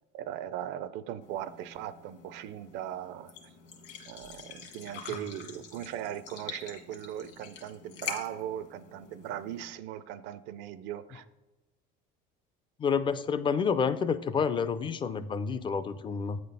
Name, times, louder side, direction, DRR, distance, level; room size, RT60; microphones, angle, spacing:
voice 1, 0.1-3.3 4.1-11.3, right 11 dB, 65° right, 14 dB, 0.5 m, -39 dB
sound 1, 1.2-9.7, left 7 dB, 55° left, 1.5 m, -45 dB
voice 2, 12.8-16.4, left 6 dB, 25° left, 13 dB, 0.4 m, -29 dB
8.3 x 4.2 x 5.3 m, 1.1 s
cardioid pair, 130°, 21 cm